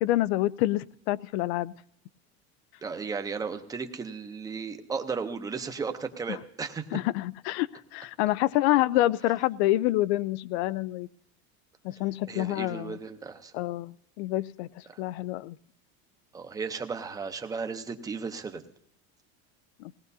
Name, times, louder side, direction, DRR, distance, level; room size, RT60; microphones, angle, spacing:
voice 1, 0.0-1.7 6.3-6.4 6.9-11.1 11.8-13.0 13.5-15.6 19.8-19.9, left 16 dB, 75° left, 20 dB, 0.5 m, -27 dB
voice 2, 2.8-6.8 12.3-13.5 14.9-15.0 16.3-18.6, right 5 dB, 10° right, 7 dB, 0.7 m, -35 dB
20.0 x 18.0 x 2.7 m, 0.74 s
cardioid pair, 170°, 32 cm